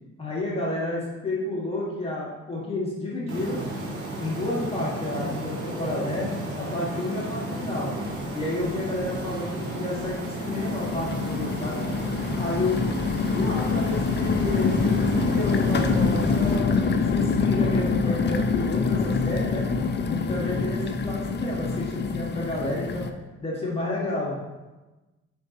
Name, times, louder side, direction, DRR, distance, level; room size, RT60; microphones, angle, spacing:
voice 1, 0.2-3.6 4.2-6.3 6.6-7.9 8.3-11.8 12.4-12.8 13.2-16.7 17.1-19.7 20.1-23.1 23.4-24.4, left 2 dB, 20° left, -6 dB, 1.9 m, -30 dB
sound 1, 3.3-16.6, right 1 dB, 90° right, 1.4 m, -33 dB
sound 2, 8.1-8.2 8.6-9.3 9.9-23.1, left 4 dB, 35° left, 0.5 m, -26 dB
6.4 x 5.6 x 3.0 m, 1.1 s
cardioid pair, 90°, 30 cm